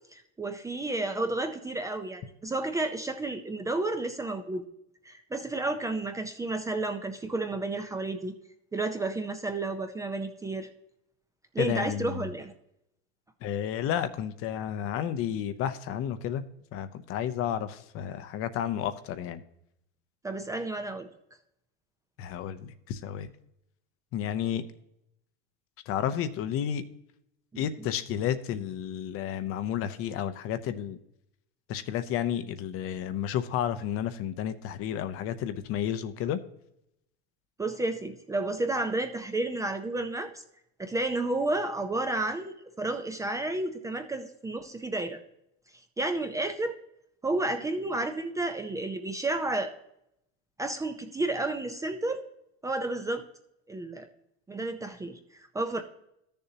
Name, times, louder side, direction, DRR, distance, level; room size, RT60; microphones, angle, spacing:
voice 1, 0.1-4.6 5.0-8.3 8.7-10.7 11.5-12.5 20.2-21.1 27.5-27.9 37.6-40.3 40.8-45.2 46.0-46.7 47.2-49.7 50.6-52.2 52.6-53.2 53.7-54.1 54.5-55.8, right 2 dB, 10° right, 7 dB, 0.5 m, -31 dB
voice 2, 11.6-12.3 13.4-16.4 16.7-19.4 22.2-23.3 24.1-24.6 25.9-26.8 27.6-31.0 31.7-36.4, left 9 dB, 45° left, 12 dB, 0.7 m, -31 dB
13.5 x 6.8 x 2.8 m, 0.80 s
supercardioid pair, 140°, 32 cm